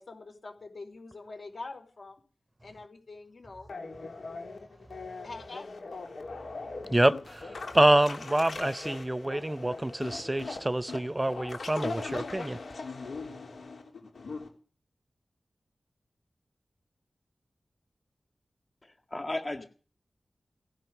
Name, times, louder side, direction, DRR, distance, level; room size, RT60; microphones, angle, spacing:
voice 1, 0.0-2.2 2.6-3.7 5.2-5.8, left 3 dB, 65° left, 4.5 m, -44 dB
sound 1, 3.7-14.5, left 3 dB, 90° left, 3.3 m, -40 dB
voice 2, 6.9-12.6, right 1 dB, 20° right, 0.6 m, -26 dB
voice 3, 18.8-19.6, left 2 dB, 30° left, 1.8 m, -35 dB
17.5 x 10.5 x 6.7 m
wide cardioid pair, 55°, 0 cm